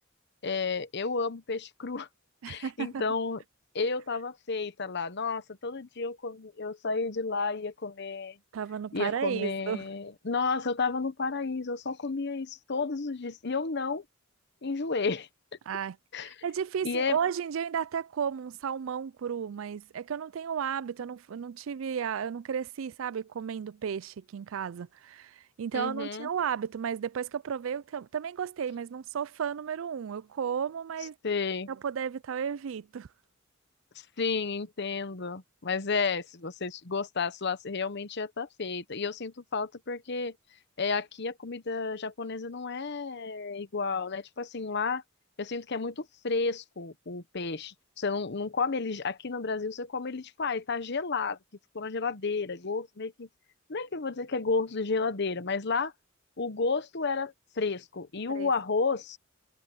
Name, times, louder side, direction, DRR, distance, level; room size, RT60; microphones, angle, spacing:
voice 1, 0.4-2.1 2.5-3.4 3.7-8.4 8.9-14.0 14.6-15.3 16.1-16.4 16.8-17.2 25.7-26.3 31.2-31.7 33.9-40.3 40.8-45.0 45.4-51.4 51.7-53.3 53.7-55.9 56.4-59.2, left 4 dB, 55° left, 1.0 m, -32 dB
voice 2, 2.4-3.0 8.5-9.8 15.7-16.0 16.2-31.2 31.7-33.1 58.3-58.5, right 7 dB, 75° right, 0.4 m, -33 dB
head